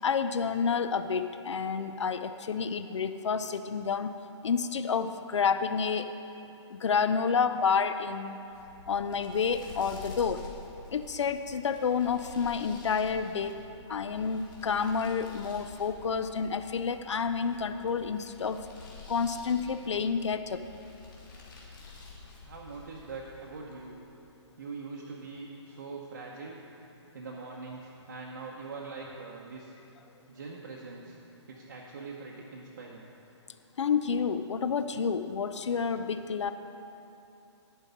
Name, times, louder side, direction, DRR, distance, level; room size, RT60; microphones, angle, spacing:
voice 1, 0.0-4.1 4.4-6.1 6.7-8.4 8.9-10.5 10.9-13.5 13.9-18.6 19.1-20.6 33.8-36.5, left 6 dB, 75° left, 10 dB, 0.5 m, -29 dB
sound 1, 8.4-23.9, left 3 dB, 40° left, 1.9 m, -49 dB
voice 2, 22.4-24.0 24.6-26.6 27.1-29.7 30.3-31.2 31.5-33.1, right 4 dB, 45° right, -3 dB, 0.9 m, -42 dB
11.0 x 4.5 x 8.1 m, 2.9 s
hypercardioid pair, 180°, 15 cm